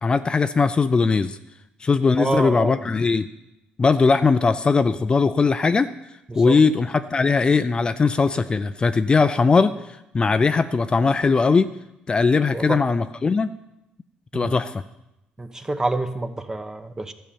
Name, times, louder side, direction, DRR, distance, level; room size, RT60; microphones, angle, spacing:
voice 1, 0.0-1.4 1.8-3.3 3.8-5.9 6.4-9.7 10.1-11.7 12.1-13.5 14.3-14.8, left 4 dB, 30° left, 11 dB, 0.4 m, -19 dB
voice 2, 2.2-2.8 6.3-6.6 12.5-12.8 14.3-14.5 15.4-17.1, right 2 dB, 15° right, 9 dB, 1.0 m, -27 dB
12.5 x 5.6 x 8.7 m, 0.90 s
cardioid pair, 90°, 3 cm